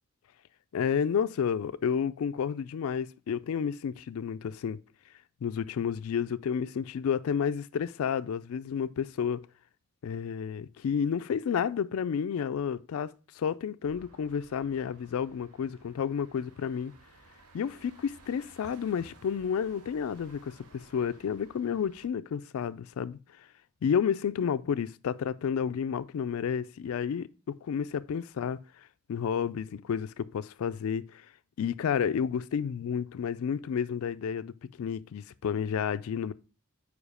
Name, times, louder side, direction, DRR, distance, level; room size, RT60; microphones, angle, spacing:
voice 1, 0.7-4.8 5.4-9.4 10.0-16.9 17.5-23.2 23.8-27.3 27.6-28.6 29.1-31.3 31.6-36.3, left 7 dB, 70° left, 0.3 m, -31 dB
sound 1, 13.8-22.1, right 2 dB, 90° right, 0.9 m, -57 dB
5.1 x 4.9 x 4.8 m
head